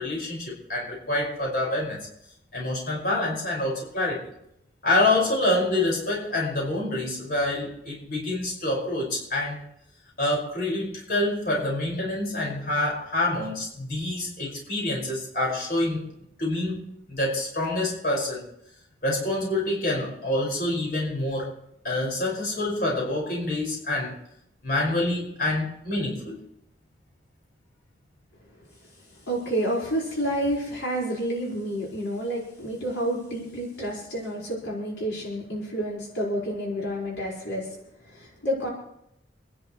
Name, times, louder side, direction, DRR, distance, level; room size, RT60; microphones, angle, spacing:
voice 1, 0.0-2.1 2.5-4.2 4.8-9.6 10.2-16.1 16.4-18.4 19.0-21.5 21.8-24.2 24.6-26.4, left 1 dB, 50° left, -3 dB, 6.1 m, -27 dB
voice 2, 29.3-37.8 38.0-38.7, equal, 75° left, -3 dB, 5.7 m, -29 dB
28.5 x 11.0 x 3.3 m, 0.77 s
head